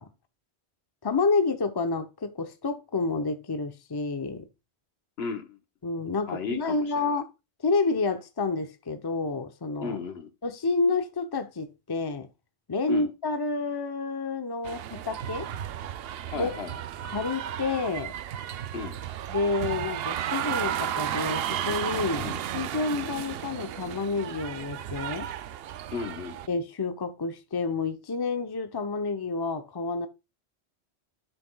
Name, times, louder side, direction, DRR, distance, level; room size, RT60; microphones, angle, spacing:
voice 1, 1.0-4.4 5.8-7.3 7.6-10.0 10.4-12.3 12.7-15.5 16.3-16.5 17.0-18.1 19.3-25.3 26.5-30.1, left 3 dB, 25° left, 0.7 m, -29 dB
voice 2, 5.2-5.6 6.3-7.2 9.8-10.3 12.9-13.1 16.3-16.7 18.7-19.0 22.2-22.4 25.9-26.4, left 5 dB, 70° left, 1.4 m, -34 dB
sound 1, 14.6-26.5, right 10 dB, 65° right, 0.7 m, -33 dB
10.5 x 5.9 x 2.3 m
omnidirectional pair, 1.1 m